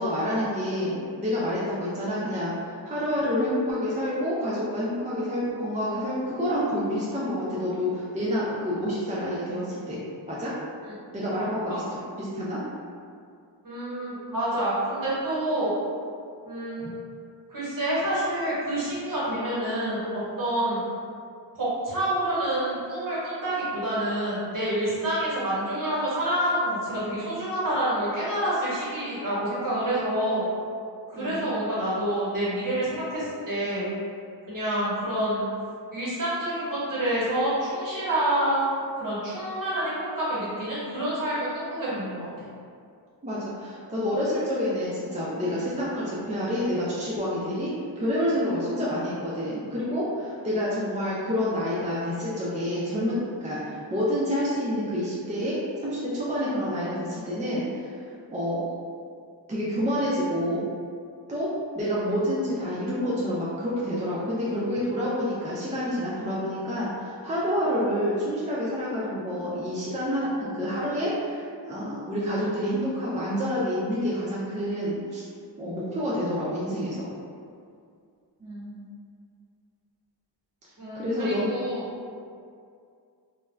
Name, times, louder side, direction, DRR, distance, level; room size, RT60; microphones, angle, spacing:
voice 1, 0.0-10.0 10.3-10.5 11.1-12.6 16.8-16.9 31.1-31.4 43.2-47.7 48.0-55.6 55.8-58.0 58.3-58.7 59.5-60.7 61.3-75.2 75.6-77.1 80.9-81.5, equal, 15° right, -8 dB, 0.4 m, -28 dB
voice 2, 13.6-15.7 16.4-16.9 17.5-20.8 21.5-30.5 31.1-33.9 34.5-35.5 35.9-42.3 78.4-78.8 80.8-81.9, right 1 dB, 45° right, -9 dB, 1.2 m, -28 dB
2.3 x 2.2 x 3.1 m, 2.3 s
wide cardioid pair, 80°, 44 cm